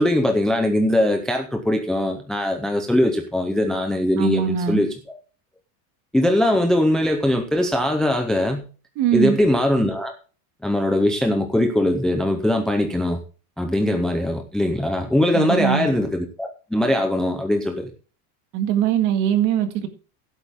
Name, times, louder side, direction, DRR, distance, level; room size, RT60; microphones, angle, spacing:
voice 1, 0.0-5.2 6.1-8.7 9.1-10.1 10.6-13.2 13.6-17.9, left 1 dB, ahead, 5 dB, 0.5 m, -21 dB
voice 2, 4.2-4.8 9.0-9.4 15.3-15.9 18.5-19.9, right 10 dB, 40° right, 8 dB, 1.9 m, -21 dB
16.0 x 8.2 x 3.6 m, 0.36 s
cardioid pair, 175°, 45 cm